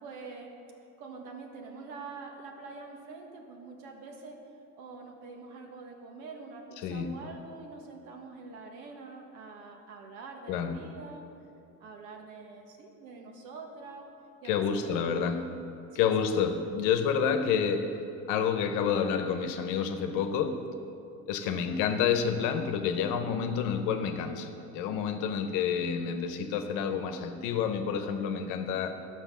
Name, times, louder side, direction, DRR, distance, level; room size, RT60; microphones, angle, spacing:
voice 1, 0.0-0.5 1.0-4.4 4.8-11.2 11.8-14.1 14.4-14.5 14.8-15.3 15.9-16.1 21.5-21.8, right 4 dB, 75° right, 2 dB, 1.6 m, -45 dB
voice 2, 6.8-7.2 10.5-10.8 14.4-15.5 15.9-18.0 18.3-20.6 21.3-29.0, left 7 dB, 85° left, 8 dB, 1.0 m, -29 dB
12.0 x 6.3 x 6.1 m, 2.7 s
cardioid pair, 150°, 30 cm